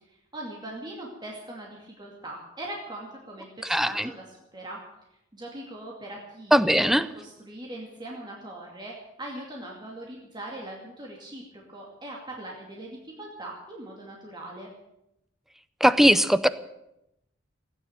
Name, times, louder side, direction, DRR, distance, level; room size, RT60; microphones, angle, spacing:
voice 1, 0.1-4.8 5.3-14.7, right 1 dB, 25° right, -2 dB, 2.5 m, -41 dB
voice 2, 3.7-4.1 6.5-7.1 15.8-16.5, equal, ahead, 15 dB, 0.6 m, -19 dB
16.5 x 9.7 x 8.9 m, 0.86 s
head